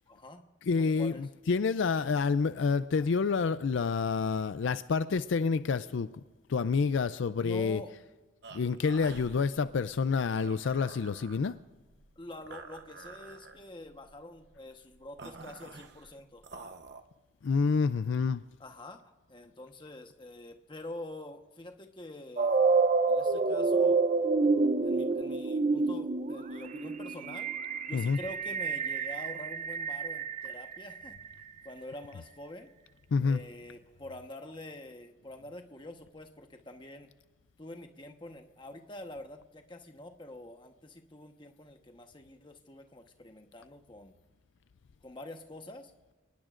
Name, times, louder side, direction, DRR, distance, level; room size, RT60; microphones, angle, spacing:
voice 1, 0.1-0.4 0.8-1.3 2.9-3.1 7.4-7.9 12.2-16.4 18.6-22.6 23.1-24.0 24.8-27.5 27.9-31.2 31.6-32.7 33.2-37.1 37.6-44.1 45.0-45.9, left 1 dB, 25° left, 5 dB, 1.1 m, -46 dB
voice 2, 0.7-6.1 6.5-7.8 8.5-11.5 17.4-18.4 27.9-28.2 33.1-33.4, left 5 dB, 70° left, 13 dB, 0.4 m, -28 dB
sound 1, 8.4-17.0, right 3 dB, 55° right, 0.9 m, -49 dB
sound 2, 22.4-31.3, right 4 dB, 35° right, 0.5 m, -28 dB
30.0 x 19.5 x 2.5 m, 1.2 s
head